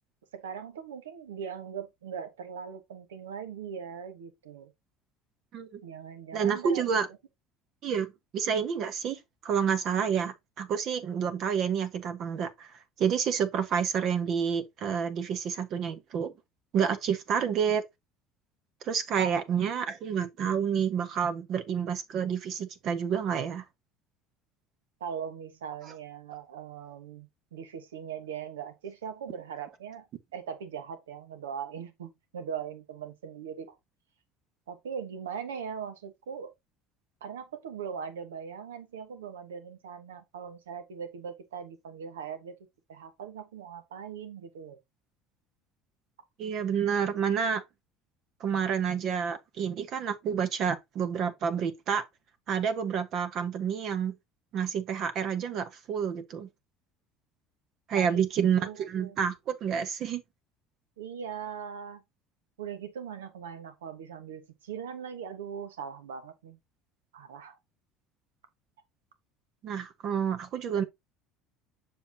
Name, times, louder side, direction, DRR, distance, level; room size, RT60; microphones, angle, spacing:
voice 1, 0.3-4.7 5.8-7.0 19.2-19.4 25.0-30.1 30.3-33.8 34.7-36.5 37.2-42.6 42.9-44.8 57.9-58.3 58.6-59.2 61.0-62.0 62.6-66.6 67.1-67.6, right 7 dB, 90° right, 1.1 m, -40 dB
voice 2, 6.3-7.1 7.8-12.7 13.0-16.3 16.7-17.8 18.8-23.6 46.4-47.6 48.4-52.0 52.5-54.2 54.5-56.5 57.9-60.2 69.6-70.8, right 7 dB, 55° right, 1.3 m, -29 dB
7.2 x 5.8 x 2.8 m
hypercardioid pair, 75°, 0 cm